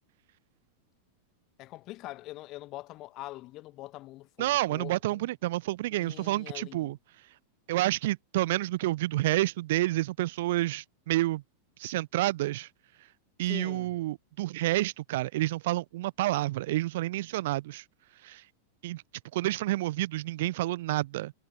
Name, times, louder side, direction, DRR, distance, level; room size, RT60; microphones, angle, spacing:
voice 1, 1.6-5.3 5.9-6.9 13.5-13.9, left 18 dB, 35° left, 1.0 m, -44 dB
voice 2, 4.4-7.0 7.7-11.4 11.8-12.7 13.4-17.8 18.2-18.4 18.8-19.0 19.3-21.3, right 17 dB, 55° right, 0.4 m, -29 dB
figure-of-eight pair, 90°, 0 cm